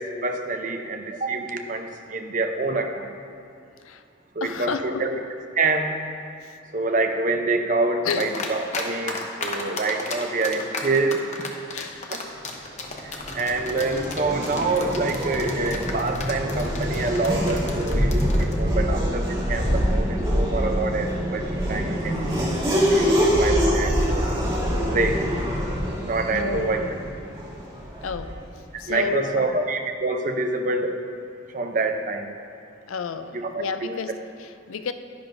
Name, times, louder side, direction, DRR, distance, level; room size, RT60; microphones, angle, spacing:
voice 1, 0.0-3.1 4.3-5.2 5.6-6.0 6.7-11.3 12.1-12.2 13.0-22.4 22.7-24.3 24.9-25.3 26.0-26.8 28.9-31.0 31.5-32.3 33.3-34.0, right 3 dB, 40° right, 5 dB, 0.6 m, -26 dB
voice 2, 4.4-5.1 6.4-6.5 8.0-8.3 11.7-12.1 26.3-26.9 28.0-28.4 28.8-29.6 32.9-34.9, left 5 dB, 85° left, 9 dB, 0.5 m, -31 dB
sound 1, 8.1-8.8 9.1-18.5, left 4 dB, 35° left, 0.8 m, -33 dB
Race car auto racing / Accelerating revving vroom, 12.8-28.4, equal, 25° right, 2.2 m, -25 dB
11.0 x 10.5 x 2.6 m, 2.4 s
head